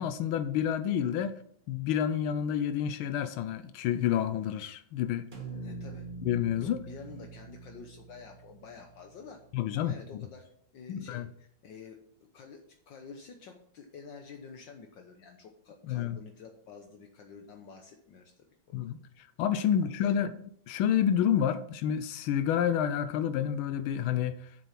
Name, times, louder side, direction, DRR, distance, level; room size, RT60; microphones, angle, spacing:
voice 1, 0.0-1.4 1.7-5.3 6.2-6.8 9.5-10.2 10.9-11.3 15.8-16.2 18.7-20.3 20.7-24.3, left 9 dB, 85° left, 1.5 m, -29 dB
sound 1, 5.3-9.5, right 3 dB, 30° right, 1.6 m, -44 dB
voice 2, 5.6-6.1 6.6-9.4 9.7-12.0 12.3-18.3 18.7-18.8 19.6-19.7 20.0-20.1, left 5 dB, 65° left, 1.6 m, -49 dB
7.8 x 7.0 x 5.9 m
omnidirectional pair, 2.2 m